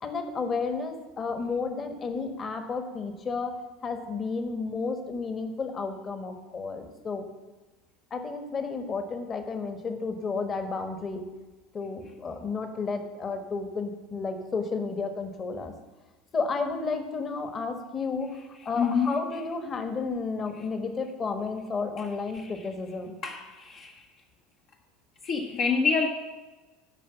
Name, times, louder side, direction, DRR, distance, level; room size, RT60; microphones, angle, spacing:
voice 1, 0.0-3.5 3.8-7.2 8.1-11.2 11.7-15.7 16.3-18.3 18.6-23.2, left 4 dB, 30° left, 7 dB, 1.4 m, -32 dB
voice 2, 18.8-19.1 22.0-22.1 22.3-22.5 23.2-24.0 25.2-26.1, left 5 dB, 50° left, 0 dB, 1.0 m, -27 dB
11.0 x 5.2 x 7.0 m, 1.2 s
figure-of-eight pair, 75°, 0 cm